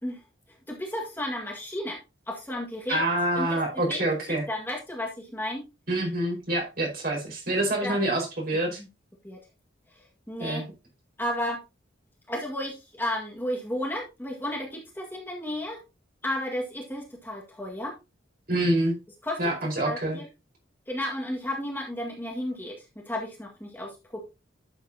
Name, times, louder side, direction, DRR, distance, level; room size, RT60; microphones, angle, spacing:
voice 1, 0.7-2.0 2.3-3.0 3.4-3.6 3.9-4.0 4.5-5.6 7.8-8.0 9.2-9.4 10.3-10.6 11.2-11.6 12.3-15.8 16.2-17.9 19.2-19.4 19.8-20.3 20.9-24.3, left 1 dB, 10° left, -2 dB, 1.8 m, -33 dB
voice 2, 2.9-4.4 5.9-8.8 10.4-10.6 18.5-19.0 19.4-20.2, right 1 dB, 50° right, 0 dB, 4.9 m, -26 dB
11.5 x 7.2 x 2.8 m, 0.26 s
head